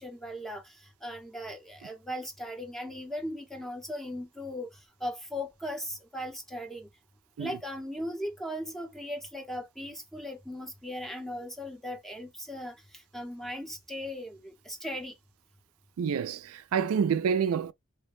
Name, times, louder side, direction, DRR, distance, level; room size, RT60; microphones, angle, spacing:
voice 1, 0.0-6.9 7.4-15.1, equal, ahead, 0.7 m, -38 dB
voice 2, 16.0-17.7, right 7 dB, 90° right, 0.3 m, -28 dB
3.3 x 2.1 x 3.2 m
head